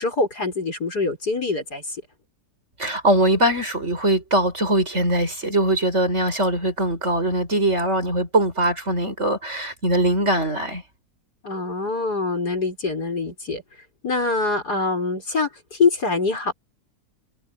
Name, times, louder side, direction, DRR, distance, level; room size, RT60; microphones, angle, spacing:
voice 1, 0.0-2.0 11.4-13.6 14.0-16.5, left 3 dB, 80° left, 6.4 m, -24 dB
voice 2, 2.8-10.8, right 1 dB, 45° right, 7.4 m, -21 dB
omnidirectional pair, 1.7 m